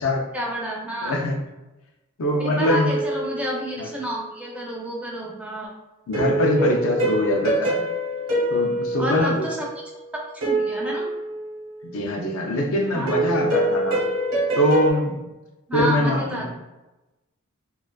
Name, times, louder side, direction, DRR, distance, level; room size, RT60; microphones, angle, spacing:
voice 1, 0.3-1.2 2.4-5.7 9.0-9.7 10.1-11.1 12.9-13.1 15.7-16.5, equal, 5° right, -3 dB, 0.4 m, -29 dB
voice 2, 1.0-1.4 2.2-2.9 3.8-3.9 6.1-7.8 8.5-9.5 11.9-14.0 14.6-15.2 15.7-16.5, left 1 dB, 65° left, 1 dB, 0.4 m, -23 dB
Medieval various music, 2.6-4.2 6.1-9.8 10.4-11.9 13.1-14.9, right 1 dB, 65° right, 0.8 m, -25 dB
2.4 x 2.3 x 2.2 m, 1.0 s
head